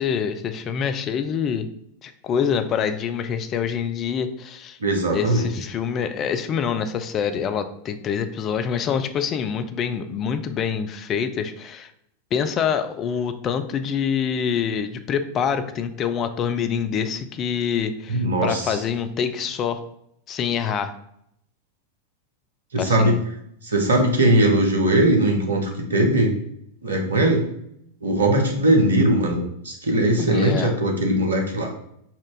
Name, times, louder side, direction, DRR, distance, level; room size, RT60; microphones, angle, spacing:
voice 1, 0.0-1.7 2.0-4.8 5.1-11.9 12.3-19.8 20.3-20.9 22.8-23.2 30.2-30.7, left 7 dB, 30° left, 9 dB, 0.4 m, -26 dB
voice 2, 4.8-5.5 18.1-18.8 22.7-23.2 23.6-26.3 26.8-27.4 28.0-31.7, right 1 dB, 70° right, 2 dB, 0.9 m, -20 dB
4.2 x 2.4 x 4.8 m, 0.74 s
figure-of-eight pair, 90°, 0 cm